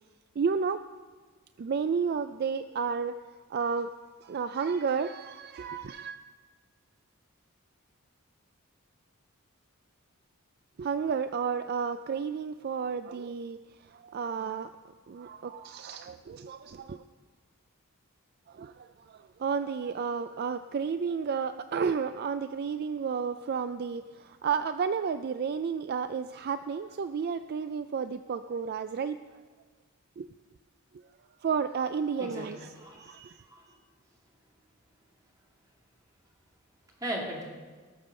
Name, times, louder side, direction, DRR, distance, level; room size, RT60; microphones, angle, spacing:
voice 1, 0.4-0.8 1.6-3.1 3.5-3.9 4.2-6.2 10.8-13.6 13.9-14.7 15.1-17.0 18.5-29.2 30.2-30.3 31.4-32.6 33.0-33.4, right 6 dB, 45° right, 11 dB, 0.3 m, -32 dB
voice 2, 32.2-33.7 37.0-37.5, right 1 dB, 15° right, -2 dB, 2.7 m, -38 dB
18.5 x 7.0 x 6.4 m, 1.5 s
head